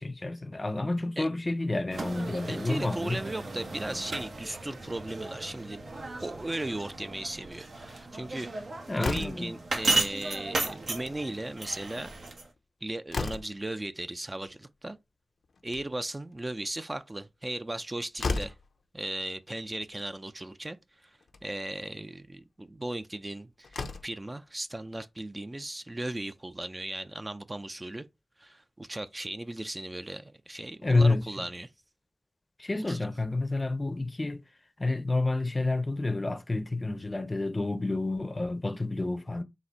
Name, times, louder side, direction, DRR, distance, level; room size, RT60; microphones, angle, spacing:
voice 1, 0.0-3.2 8.9-9.5 30.8-31.2 32.6-34.4 34.8-39.4, left 2 dB, 30° left, 0.6 m, -29 dB
sound 1, 1.9-12.5, right 3 dB, 70° right, 0.9 m, -35 dB
voice 2, 2.5-5.8 6.2-8.5 9.0-12.1 12.8-15.0 15.6-18.5 18.9-28.1 28.4-31.7 32.9-33.0, right 1 dB, 25° right, 0.4 m, -37 dB
Slam, 9.0-9.6 10.8-11.2 11.5-11.6 11.9-12.0 12.6-13.7 15.4-16.1 17.7-17.8 18.2-18.7 19.8-19.9 20.3-20.4 21.2-21.5 23.2-23.3 23.6-24.2, left 4 dB, 80° left, 0.5 m, -34 dB
4.0 x 2.5 x 4.2 m
cardioid pair, 60°, 0 cm